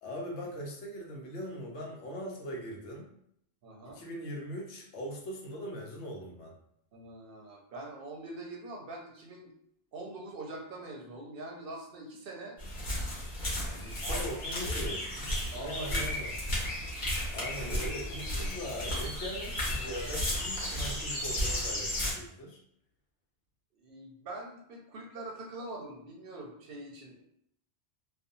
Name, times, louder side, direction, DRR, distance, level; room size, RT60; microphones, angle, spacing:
voice 1, 0.0-3.1 3.9-6.5 13.7-16.4 17.3-22.6, equal, 85° left, -1 dB, 1.0 m, -41 dB
voice 2, 3.6-4.0 6.9-9.5 9.9-12.6 14.0-14.8 15.5-16.2 16.6-16.9 17.6-18.5 23.7-27.2, right 2 dB, 65° right, 0 dB, 0.7 m, -44 dB
sound 1, 12.6-22.1, left 1 dB, 50° left, 1.0 m, -34 dB
2.5 x 2.3 x 2.6 m, 0.72 s
omnidirectional pair, 1.1 m